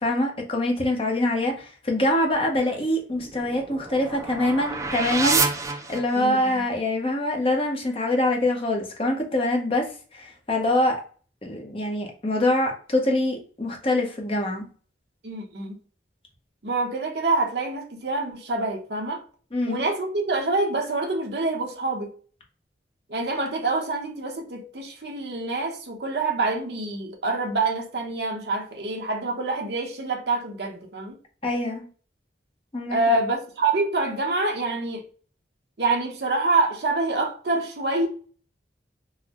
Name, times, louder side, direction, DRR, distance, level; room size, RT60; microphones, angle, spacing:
voice 1, 0.0-11.0 11.4-14.6 19.5-19.8 31.4-31.8 32.7-33.0, left 1 dB, 30° left, 0.7 m, -24 dB
sound 1, 3.1-6.5, right 4 dB, 15° right, 0.3 m, -28 dB
voice 2, 6.1-6.6 15.2-15.7 16.6-19.2 19.7-22.1 23.1-31.2 32.9-35.1 35.8-38.1, right 3 dB, 60° right, 0.8 m, -26 dB
3.9 x 2.0 x 2.8 m
head